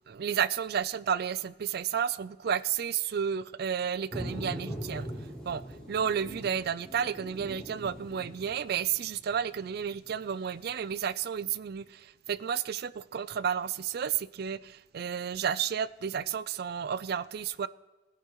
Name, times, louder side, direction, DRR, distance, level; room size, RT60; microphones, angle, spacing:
voice 1, 0.1-5.1 5.4-5.6 5.9-17.7, right 8 dB, 60° right, 0.4 m, -32 dB
sound 1, 4.1-10.8, equal, 5° left, 3.7 m, -42 dB
20.5 x 10.5 x 3.0 m
head